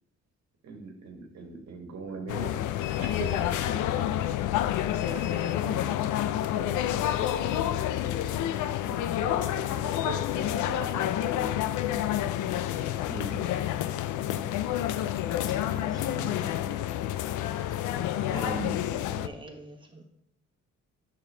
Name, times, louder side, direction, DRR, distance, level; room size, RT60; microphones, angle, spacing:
voice 1, 0.6-2.6 3.0-4.1 5.0-11.7, right 4 dB, 60° right, 4 dB, 1.4 m, -42 dB
sound 1, 2.3-19.3, left 12 dB, 80° left, 0.5 m, -29 dB
voice 2, 13.1-13.6 15.7-16.7 17.5-17.8 18.3-18.8, equal, ahead, -6 dB, 1.7 m, -39 dB
voice 3, 18.8-20.1, right 2 dB, 15° right, 2 dB, 1.3 m, -46 dB
7.1 x 6.1 x 3.3 m, 0.81 s
cardioid pair, 90°, 30 cm